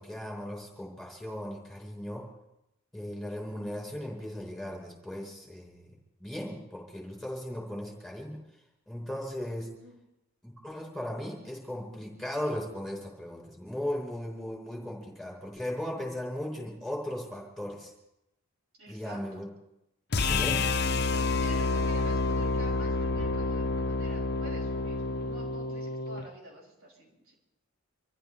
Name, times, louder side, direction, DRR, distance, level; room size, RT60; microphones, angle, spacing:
voice 1, 0.0-2.3 2.9-5.9 6.2-8.4 8.9-9.7 10.4-17.9 18.9-19.5 20.3-20.7, left 1 dB, ahead, -2 dB, 4.5 m, -37 dB
voice 2, 18.8-19.4 20.9-27.3, right 1 dB, 75° right, -3 dB, 6.5 m, -48 dB
sound 1, 20.1-26.3, left 3 dB, 50° left, 0.8 m, -29 dB
27.0 x 14.5 x 3.4 m, 0.87 s
head